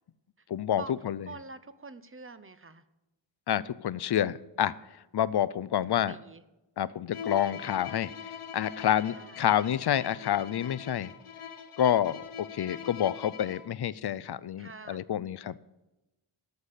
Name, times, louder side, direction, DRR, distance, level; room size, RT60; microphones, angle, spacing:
voice 1, 0.5-1.3 3.5-4.7 5.1-6.2 6.8-11.1 11.8-15.6, left 10 dB, 55° left, 19 dB, 0.5 m, -28 dB
voice 2, 1.3-2.8 6.1-6.4 9.1-9.4 14.6-15.0, right 4 dB, 25° right, 14 dB, 0.6 m, -45 dB
Bowed string instrument, 7.1-13.8, left 7 dB, 80° left, 1.1 m, -43 dB
13.0 x 6.8 x 8.2 m, 1.0 s
wide cardioid pair, 90°, 50 cm